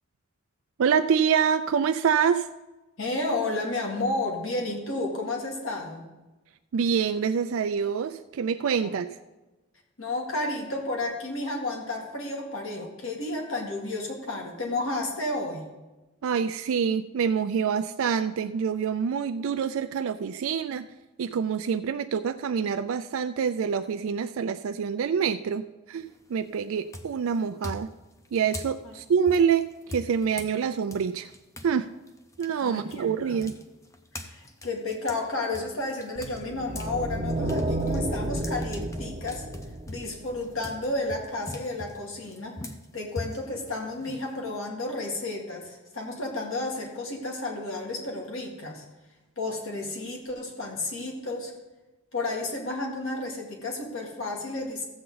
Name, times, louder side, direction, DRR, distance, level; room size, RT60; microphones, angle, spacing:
voice 1, 0.8-2.5 6.7-9.1 16.2-20.9 21.2-27.9 28.3-29.7 29.9-31.3 31.6-31.9 32.4-33.6, right 7 dB, 75° right, 9 dB, 0.4 m, -26 dB
voice 2, 3.0-6.1 8.8-8.9 10.0-15.7 32.6-33.4 34.1-39.5 39.9-42.5 42.9-48.8 49.4-51.5 52.1-54.9, left 2 dB, 70° left, 0 dB, 2.0 m, -32 dB
sound 1, 26.0-26.4 26.9-31.7 32.1-36.9 37.3-44.7, left 1 dB, 15° left, 0.6 m, -42 dB
sound 2, 36.1-40.6, right 1 dB, 25° right, 0.7 m, -31 dB
14.0 x 7.8 x 3.9 m, 1.1 s
head